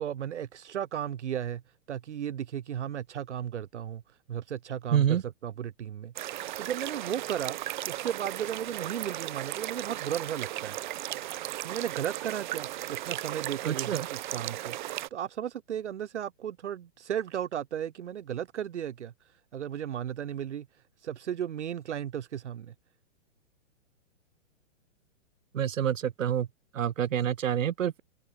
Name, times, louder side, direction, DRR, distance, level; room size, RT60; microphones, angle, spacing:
voice 1, 0.0-1.6 1.9-7.6 7.9-10.8 11.6-22.7, right 9 dB, 60° right, 2.4 m, -35 dB
voice 2, 4.9-5.2 13.6-14.1 25.5-26.5 26.7-28.0, right 9 dB, 80° right, 1.6 m, -27 dB
sound 1, 6.2-15.1, right 14 dB, 35° right, 7.8 m, -36 dB
hypercardioid pair, 175°, 39 cm